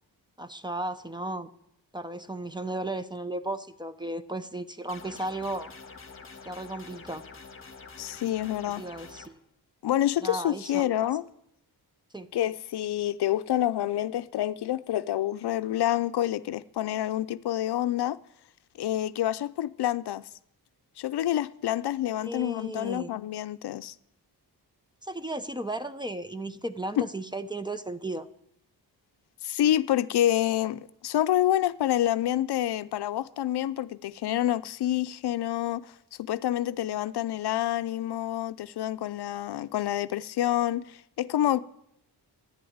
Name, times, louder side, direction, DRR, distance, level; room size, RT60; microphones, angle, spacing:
voice 1, 0.4-1.5 1.9-5.7 6.5-7.2 8.8-9.4 10.2-11.1 12.1-12.3 22.2-23.1 25.0-28.3, right 2 dB, 10° right, 0.7 m, -35 dB
sound 1, 4.9-9.3, left 4 dB, 30° left, 1.5 m, -47 dB
voice 2, 8.0-8.8 9.8-11.2 12.3-18.2 18.8-20.2 21.0-23.9 27.0-27.1 29.4-35.9 36.2-41.6, left 12 dB, 75° left, 0.6 m, -27 dB
11.0 x 11.0 x 8.7 m
wide cardioid pair, 110°, 40 cm